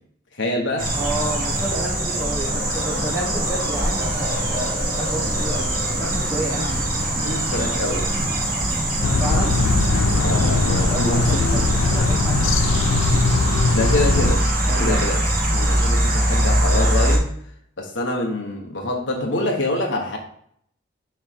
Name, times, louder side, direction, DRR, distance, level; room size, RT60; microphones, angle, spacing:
voice 1, 0.4-1.0 7.2-8.2 10.2-11.2 11.5-11.6 13.7-14.4 14.8-15.2 15.5-17.3 17.8-20.2, left 2 dB, 65° left, 0 dB, 1.4 m, -25 dB
sound 1, 0.8-17.2, right 1 dB, 45° right, 1.3 m, -22 dB
voice 2, 0.9-5.7 6.0-6.8 9.2-9.5 10.9-12.6 14.7-15.0, right 1 dB, 15° right, -7 dB, 1.2 m, -30 dB
sound 2, 9.0-14.3, left 3 dB, 80° left, 0.5 m, -20 dB
6.5 x 3.3 x 4.7 m, 0.66 s
head